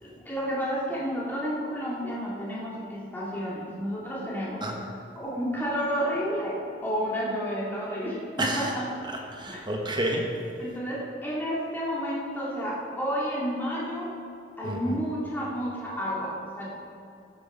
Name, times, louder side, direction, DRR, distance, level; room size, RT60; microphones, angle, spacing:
voice 1, 0.0-4.7 5.2-8.8 9.5-9.6 10.6-14.1 14.6-16.7, equal, 10° left, -7 dB, 2.3 m, -31 dB
voice 2, 8.4-8.7 9.1-10.3 14.6-15.0, right 1 dB, 25° right, 1 dB, 1.2 m, -30 dB
15.0 x 7.9 x 5.4 m, 2.5 s
head